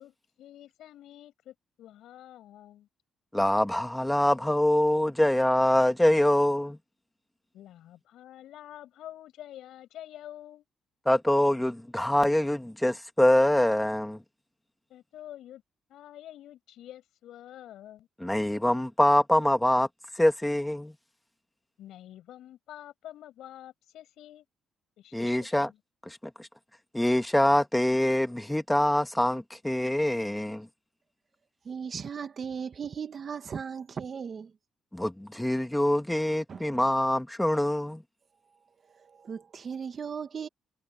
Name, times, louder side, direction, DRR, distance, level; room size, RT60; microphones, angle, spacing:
voice 1, 0.0-2.9 7.5-10.6 14.9-15.6 15.9-18.1 21.8-24.5 25.0-25.8, left 12 dB, 80° left, 7.0 m, -47 dB
voice 2, 3.3-6.8 11.1-14.2 18.2-19.9 20.2-20.9 25.1-25.7 26.1-26.5 26.9-30.7 34.9-38.0, left 1 dB, 5° left, 2.2 m, -24 dB
voice 3, 31.6-34.5 36.5-36.7 38.9-40.5, right 6 dB, 45° right, 2.0 m, -37 dB
cardioid pair, 90°, 0 cm